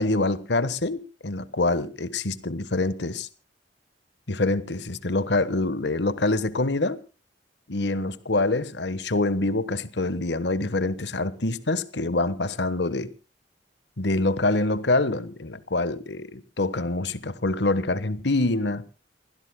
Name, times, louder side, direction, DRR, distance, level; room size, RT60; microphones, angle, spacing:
voice 1, 0.0-3.3 4.3-7.0 7.7-13.1 14.0-18.8, left 2 dB, 65° left, 1.3 m, -25 dB
28.5 x 16.0 x 2.3 m
head